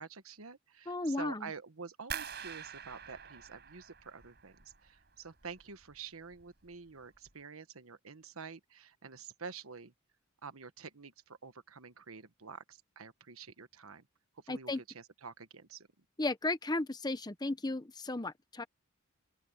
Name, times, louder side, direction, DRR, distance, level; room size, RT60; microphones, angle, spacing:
voice 1, 0.0-9.9 10.4-14.1 14.4-15.9, right 5 dB, 85° right, 1.3 m, -48 dB
voice 2, 0.9-1.5 14.5-14.8 16.2-18.6, left 2 dB, 20° left, 0.9 m, -34 dB
sound 1, 2.1-5.0 5.3-6.0 6.3-6.7 7.2-7.3, right 8 dB, 50° right, 5.8 m, -45 dB
open air
head